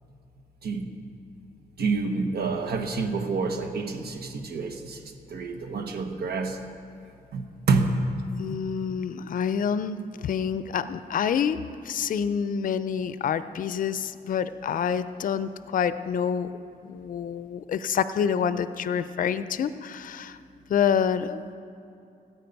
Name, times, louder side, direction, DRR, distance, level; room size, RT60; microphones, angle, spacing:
voice 1, 0.6-0.9 1.8-5.0 5.3-6.6 7.3-8.0, right 4 dB, 80° right, 5 dB, 1.1 m, -28 dB
voice 2, 8.4-16.5 16.8-20.4 20.7-21.5, left 7 dB, 60° left, 13 dB, 0.4 m, -27 dB
16.0 x 8.4 x 5.3 m, 2.6 s
wide cardioid pair, 130°, 16 cm